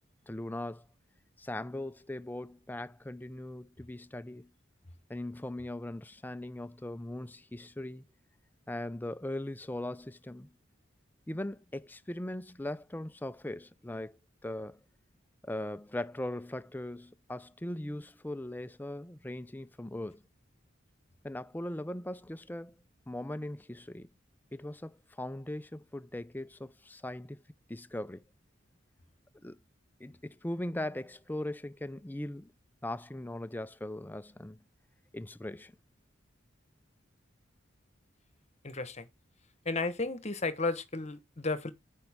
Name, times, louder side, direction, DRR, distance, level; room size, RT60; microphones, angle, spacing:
voice 1, 0.3-0.9 1.4-4.5 5.1-8.0 8.7-10.5 11.3-14.8 15.4-20.2 21.2-22.7 23.1-24.1 24.5-27.4 27.7-28.2 29.4-29.6 30.0-32.5 32.8-34.6 35.1-35.7, left 1 dB, 10° left, 0.5 m, -39 dB
voice 2, 38.6-39.1 39.6-41.7, left 3 dB, 35° left, 1.1 m, -33 dB
9.1 x 5.3 x 3.5 m
head